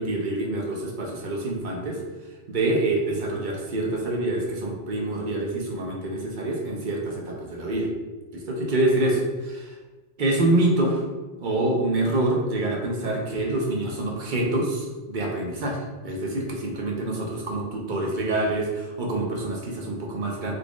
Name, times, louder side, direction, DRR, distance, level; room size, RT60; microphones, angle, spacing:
voice 1, 0.0-2.0 2.5-7.9 8.3-9.8 10.2-11.0 11.4-20.5, right 2 dB, 50° right, 0 dB, 0.6 m, -26 dB
4.0 x 3.3 x 2.3 m, 1.2 s
omnidirectional pair, 1.2 m